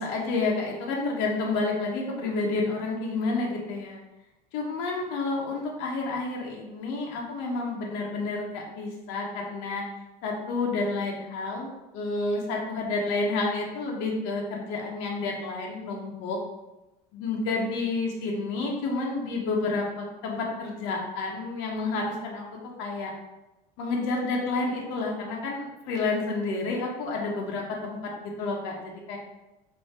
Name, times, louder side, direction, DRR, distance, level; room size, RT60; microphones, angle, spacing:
voice 1, 0.0-4.0 4.5-9.8 10.2-16.4 17.1-22.5 22.8-23.1 23.8-28.0 28.4-29.2, left 3 dB, 70° left, -1 dB, 0.9 m, -30 dB
4.5 x 2.7 x 2.8 m, 1.0 s
cardioid pair, 130°, 20 cm